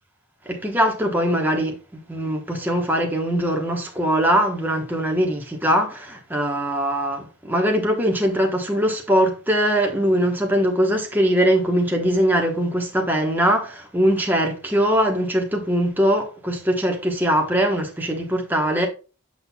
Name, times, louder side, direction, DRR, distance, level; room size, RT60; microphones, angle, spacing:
voice 1, 0.5-18.9, equal, 10° right, 1.0 m, -21 dB
7.7 x 5.8 x 2.2 m
head